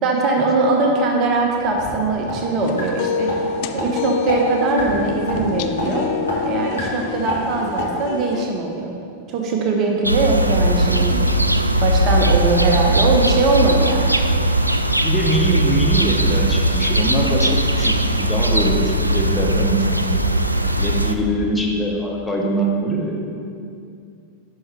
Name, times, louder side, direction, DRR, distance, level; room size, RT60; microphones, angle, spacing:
voice 1, 0.0-3.4 3.7-6.1 6.4-8.9 9.3-11.4 11.8-14.2, right 3 dB, 35° right, 1 dB, 0.8 m, -21 dB
sound 1, 1.2-1.9 2.3-2.4 2.8-2.9 3.3-3.4 3.8-3.9 4.3-4.4 4.8-5.0 5.3-5.4 5.8-5.9 6.3-6.4 6.8-6.9 7.3-7.4 7.8-7.9, left 2 dB, 75° left, 1.6 m, -27 dB
sound 2, 2.6-8.5, left 7 dB, 45° left, 0.4 m, -27 dB
sound 3, 10.0-21.1, right 1 dB, 85° right, 0.3 m, -19 dB
voice 2, 15.0-20.2 20.8-23.4, right 1 dB, 5° left, -2 dB, 1.0 m, -23 dB
10.5 x 5.7 x 3.2 m, 2.4 s
figure-of-eight pair, 90°, 0 cm